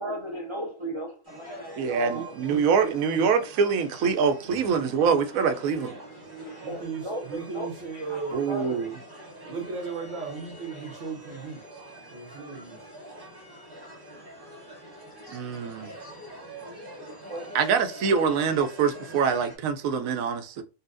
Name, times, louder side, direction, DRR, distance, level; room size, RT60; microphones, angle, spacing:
voice 1, 0.0-2.3 6.4-8.8 17.0-17.5 18.1-18.4, right 1 dB, 50° right, 0.3 m, -36 dB
sound 1, 1.2-19.6, right 1 dB, 15° right, 1.8 m, -45 dB
voice 2, 1.8-6.0 8.3-8.9 15.3-15.9 17.5-20.6, right 6 dB, 85° right, 1.0 m, -25 dB
voice 3, 4.4-4.7 6.6-8.4 9.4-11.6 12.1-12.8, right 5 dB, 65° right, 1.3 m, -36 dB
4.0 x 2.3 x 2.5 m
omnidirectional pair, 1.4 m